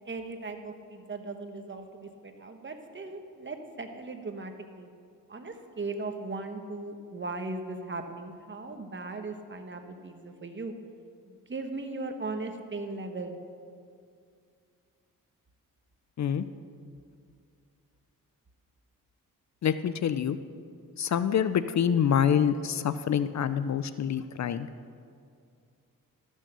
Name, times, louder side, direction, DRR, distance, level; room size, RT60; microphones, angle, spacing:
voice 1, 0.1-4.9 5.3-10.7 11.3-13.4, right 3 dB, 35° right, 6 dB, 1.2 m, -38 dB
voice 2, 19.6-20.4 21.0-24.7, left 8 dB, 50° left, 13 dB, 0.5 m, -26 dB
13.5 x 6.4 x 6.7 m, 2.4 s
cardioid pair, 70°, 35 cm